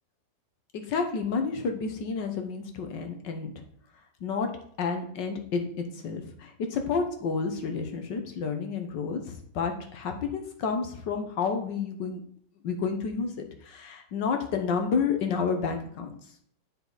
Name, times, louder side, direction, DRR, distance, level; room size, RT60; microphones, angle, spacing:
voice 1, 0.7-3.6 4.2-4.5 4.8-5.7 6.0-12.2 12.6-13.3 13.7-16.1, left 5 dB, 85° left, 5 dB, 1.9 m, -30 dB
9.5 x 6.3 x 4.1 m, 0.64 s
omnidirectional pair, 1.9 m